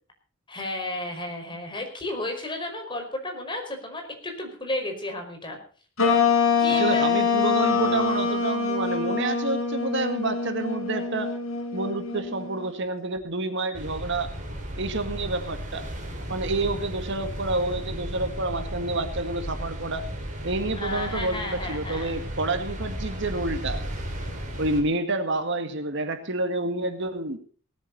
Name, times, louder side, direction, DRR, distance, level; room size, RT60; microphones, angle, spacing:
voice 1, 0.5-5.6 6.0-6.2 6.6-7.1 20.8-22.1, left 1 dB, 25° left, 3 dB, 5.2 m, -33 dB
sound 1, 6.0-12.7, left 5 dB, 85° left, 5.1 m, -25 dB
voice 2, 6.7-11.3 11.7-14.3 14.8-15.9 16.3-20.1 20.4-23.8 24.6-27.4, right 2 dB, 60° right, 8 dB, 2.0 m, -28 dB
sound 2, 13.7-24.8, equal, 40° right, 5.1 m, -34 dB
18.5 x 13.5 x 4.1 m, 0.42 s
head